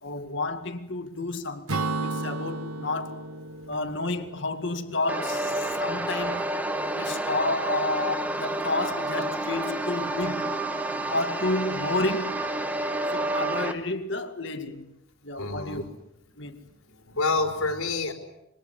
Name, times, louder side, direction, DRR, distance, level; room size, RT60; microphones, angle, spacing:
voice 1, 0.0-3.2 3.7-6.5 6.9-10.5 11.1-12.4 13.1-14.9 15.2-15.8 16.4-16.6, left 2 dB, 55° left, 2.2 m, -30 dB
Acoustic guitar / Strum, 1.7-5.3, right 3 dB, 90° right, 1.2 m, -33 dB
sound 1, 5.1-13.7, right 1 dB, 5° right, 1.5 m, -29 dB
voice 2, 15.4-15.9 16.5-18.1, left 3 dB, 85° left, 4.6 m, -29 dB
26.5 x 24.0 x 8.4 m
head